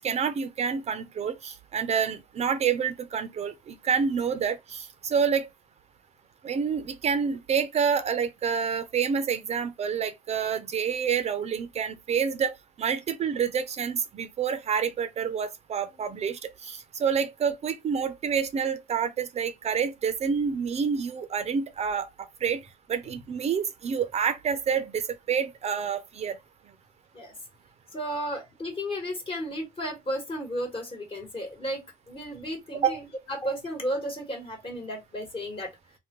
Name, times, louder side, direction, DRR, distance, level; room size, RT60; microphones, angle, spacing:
voice 1, 0.0-5.5 6.4-12.5 12.8-22.1 22.4-22.6 22.9-26.4 32.8-33.0, right 6 dB, 40° right, 0.5 m, -28 dB
voice 2, 27.9-31.8 32.1-33.0 33.3-35.7, equal, 30° left, 1.2 m, -33 dB
3.5 x 2.1 x 2.9 m
cardioid pair, 110°, 17 cm